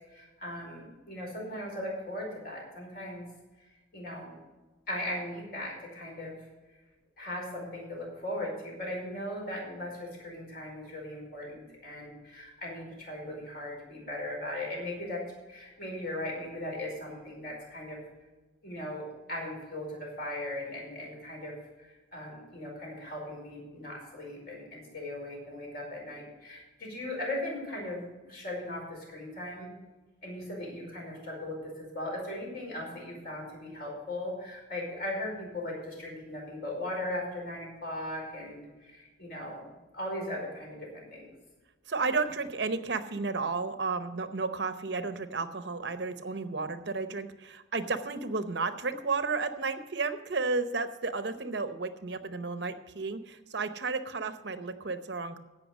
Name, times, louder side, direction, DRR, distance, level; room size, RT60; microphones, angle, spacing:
voice 1, 0.1-3.3 3.6-3.7 3.9-4.3 4.9-6.4 7.2-15.2 15.5-18.0 18.6-29.7 30.2-39.6 39.9-41.3, left 1 dB, 50° left, -2 dB, 5.0 m, -38 dB
voice 2, 41.9-55.4, right 4 dB, 55° right, 10 dB, 0.8 m, -32 dB
16.0 x 5.8 x 6.3 m, 1.2 s
head